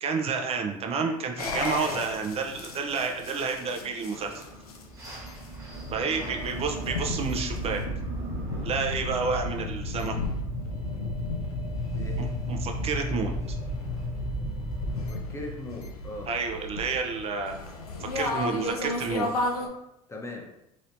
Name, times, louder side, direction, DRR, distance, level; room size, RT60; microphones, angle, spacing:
voice 1, 0.0-4.4 5.9-7.8 8.6-10.2 12.2-13.6 16.3-17.5 18.0-19.3, right 4 dB, 35° right, 3 dB, 0.6 m, -30 dB
sound 1, 1.4-19.7, left 2 dB, 85° left, 0.5 m, -35 dB
sound 2, 4.1-15.1, equal, 15° right, 1.3 m, -36 dB
voice 2, 6.0-7.0 11.9-12.2 14.9-16.3 20.1-20.5, left 1 dB, 15° left, 0 dB, 0.9 m, -41 dB
3.0 x 3.0 x 2.7 m, 0.86 s
hypercardioid pair, 75°, 18 cm